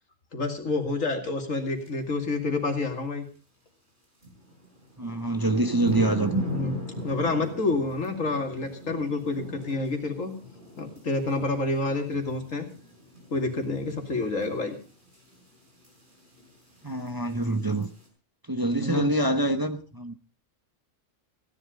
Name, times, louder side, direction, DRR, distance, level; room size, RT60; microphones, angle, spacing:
voice 1, 0.3-3.2 6.5-6.7 7.0-10.3 10.8-12.7 13.3-14.8 18.8-19.1, left 3 dB, 80° left, 4 dB, 2.7 m, -28 dB
sound 1, 1.8-1.9 4.2-18.1, equal, 40° right, 5.4 m, -40 dB
voice 2, 5.0-6.4 16.8-17.9 18.5-20.1, right 1 dB, 20° right, 7 dB, 0.8 m, -25 dB
16.5 x 10.5 x 5.1 m, 0.39 s
omnidirectional pair, 1.3 m